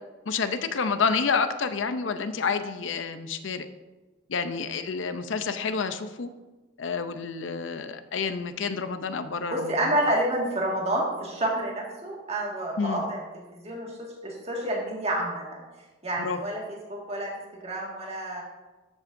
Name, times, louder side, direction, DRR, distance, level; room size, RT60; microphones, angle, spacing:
voice 1, 0.3-3.7 4.3-6.3 6.8-9.7 12.8-13.1 16.2-16.4, left 5 dB, 80° left, 10 dB, 0.6 m, -29 dB
voice 2, 9.5-15.6 16.0-18.4, right 1 dB, 35° right, -2 dB, 1.9 m, -29 dB
13.5 x 7.1 x 2.6 m, 1.2 s
head